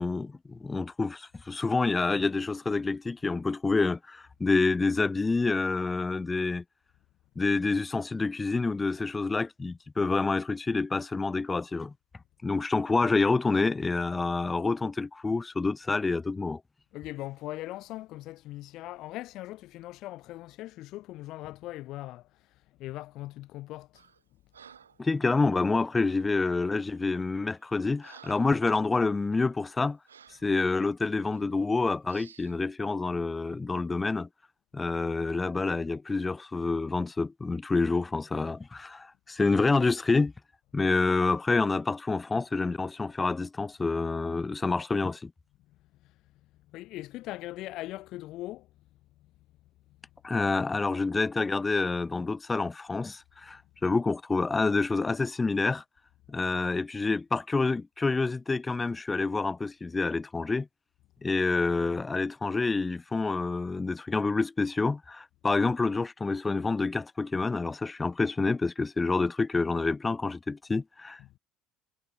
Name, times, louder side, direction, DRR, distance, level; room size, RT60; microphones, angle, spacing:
voice 1, 0.0-6.6 7.4-11.9 12.4-16.6 25.0-30.0 30.4-34.3 34.7-40.3 40.7-45.3 50.2-55.8 56.3-60.7 61.2-71.4, left 3 dB, 20° left, 0.9 m, -28 dB
voice 2, 16.9-22.3 22.8-24.0 46.7-48.7 71.2-71.3, left 16 dB, 60° left, 1.4 m, -40 dB
Breathing, 23.9-24.2 24.5-25.0 26.1-26.4 27.0-27.2 27.6-28.7 29.1-29.3 30.1-30.5 31.2-31.4 32.1-32.6, right 7 dB, 90° right, 5.2 m, -54 dB
hypercardioid pair, 65°, 0 cm